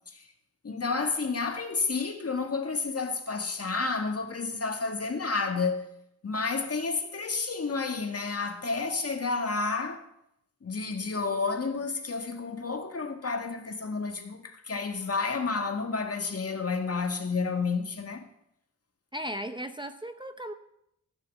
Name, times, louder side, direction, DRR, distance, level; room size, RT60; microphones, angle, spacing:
voice 1, 0.6-5.9 6.2-10.0 10.6-18.2, left 4 dB, 50° left, 1.8 m, -30 dB
voice 2, 19.1-20.5, equal, 15° right, 0.7 m, -36 dB
15.5 x 6.6 x 7.1 m
wide cardioid pair, 110°, 31 cm